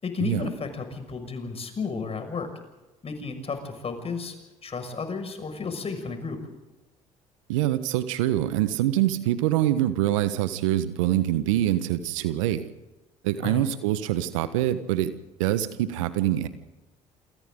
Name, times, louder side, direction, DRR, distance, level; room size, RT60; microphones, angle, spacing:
voice 1, 0.0-2.5 3.0-4.4 4.6-6.4 13.4-13.6, left 4 dB, 40° left, 6 dB, 6.2 m, -32 dB
voice 2, 7.5-12.7 13.2-15.1 15.4-16.5, right 13 dB, 80° right, 12 dB, 1.4 m, -25 dB
28.5 x 27.0 x 3.9 m, 1.1 s
hypercardioid pair, 55°, 16 cm